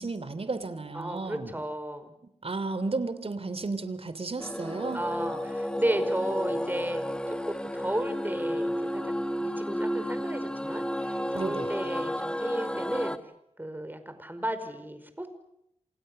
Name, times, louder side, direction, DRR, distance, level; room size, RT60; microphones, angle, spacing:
voice 1, 0.0-1.5 2.4-5.0 11.3-11.7, right 3 dB, 55° right, 12 dB, 3.1 m, -33 dB
voice 2, 0.9-2.1 4.9-7.0 7.3-9.1 9.4-13.2 13.6-15.3, right 1 dB, 15° right, 10 dB, 4.8 m, -34 dB
sound 1, 4.4-13.2, equal, 10° left, 1.7 m, -32 dB
28.0 x 28.0 x 6.8 m, 0.77 s
wide cardioid pair, 65°, 12 cm